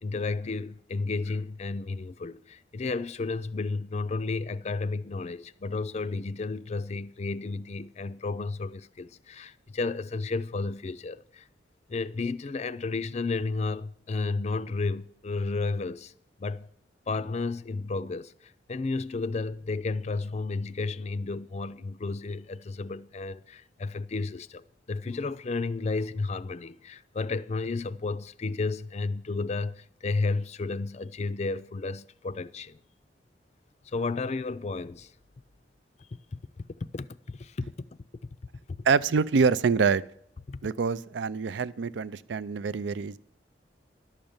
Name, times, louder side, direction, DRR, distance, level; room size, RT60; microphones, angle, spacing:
voice 1, 0.0-11.5 11.9-16.1 16.4-16.7 17.1-32.8 33.9-35.1 36.1-36.7 36.9-38.0 40.5-40.6, left 3 dB, 35° left, 0.4 m, -32 dB
voice 2, 38.8-40.0 40.6-43.2, right 5 dB, 80° right, 0.5 m, -25 dB
12.0 x 6.6 x 8.8 m
head